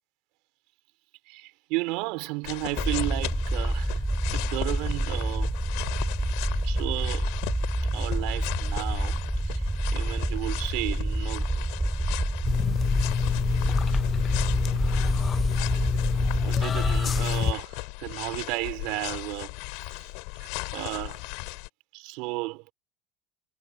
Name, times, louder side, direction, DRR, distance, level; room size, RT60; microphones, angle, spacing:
voice 1, 1.3-4.0 4.3-5.5 6.6-7.3 7.9-9.2 9.5-9.6 9.9-11.5 15.7-15.8 16.4-19.5 19.9-20.1 20.4-21.2 21.9-22.7, right 24 dB, 75° right, 3.0 m, -33 dB
sound 1, 2.4-21.7, left 32 dB, 75° left, 5.4 m, -37 dB
sound 2, 2.8-17.2, right 1 dB, 5° right, 4.9 m, -28 dB
sound 3, 12.4-17.5, left 8 dB, 40° left, 0.5 m, -27 dB
supercardioid pair, 85°, 0 cm